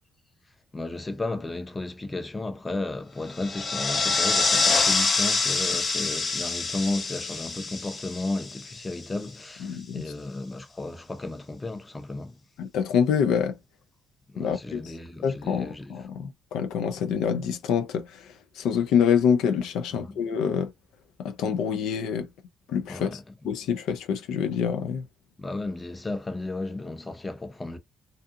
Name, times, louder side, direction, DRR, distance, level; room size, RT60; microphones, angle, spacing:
voice 1, 0.7-12.4 14.3-15.9 19.9-20.2 22.9-23.2 25.4-27.8, left 2 dB, 20° left, 0.6 m, -34 dB
sound 1, 3.3-9.2, left 4 dB, 45° left, 0.9 m, -26 dB
voice 2, 9.6-10.1 12.6-13.6 14.4-14.8 15.2-20.7 21.2-22.3 22.7-23.2 23.4-25.0, left 7 dB, 90° left, 0.4 m, -26 dB
2.6 x 2.3 x 2.5 m
cardioid pair, 90°, 0 cm